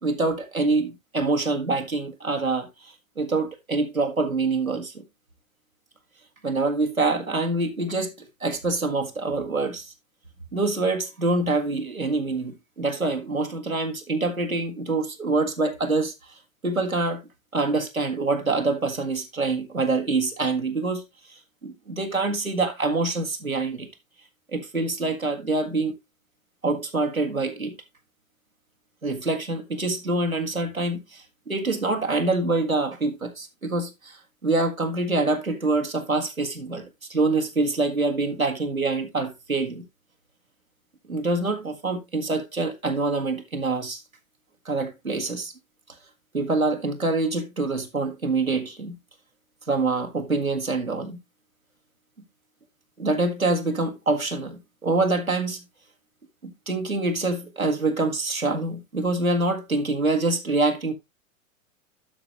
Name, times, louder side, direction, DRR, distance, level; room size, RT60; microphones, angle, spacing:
voice 1, 0.0-5.0 6.4-8.1 8.4-9.9 10.5-16.1 16.6-17.2 17.5-21.0 21.3-23.9 24.5-26.0 26.6-27.7 29.0-39.8 41.1-44.0 44.6-45.5 46.3-49.0 49.7-51.2 53.0-55.6 56.4-60.9, right 3 dB, 90° right, 1.7 m, -25 dB
12.0 x 5.0 x 3.0 m
figure-of-eight pair, 95°, 40 cm